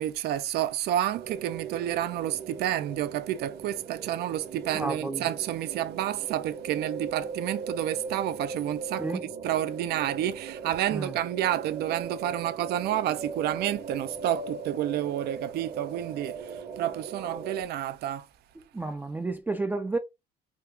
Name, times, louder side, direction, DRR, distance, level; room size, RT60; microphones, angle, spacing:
voice 1, 0.0-18.3, right 12 dB, 70° right, 0.5 m, -30 dB
sound 1, 1.1-17.6, right 5 dB, 45° right, 0.8 m, -39 dB
voice 2, 4.7-5.3 9.0-9.2 10.9-11.1 18.7-20.0, right 2 dB, 10° right, 0.4 m, -31 dB
3.7 x 2.4 x 2.7 m
cardioid pair, 110°, 17 cm